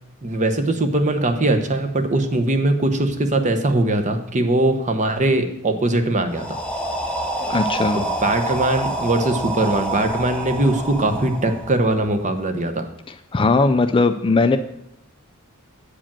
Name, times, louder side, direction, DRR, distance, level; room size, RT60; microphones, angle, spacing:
voice 1, 0.2-6.6 7.9-12.9, right 2 dB, 35° right, 7 dB, 0.9 m, -21 dB
sound 1, 6.3-12.2, right 1 dB, 5° left, 0.8 m, -27 dB
voice 2, 7.4-8.0 13.3-14.6, left 3 dB, 25° left, 10 dB, 0.4 m, -18 dB
8.6 x 5.0 x 7.3 m, 0.79 s
head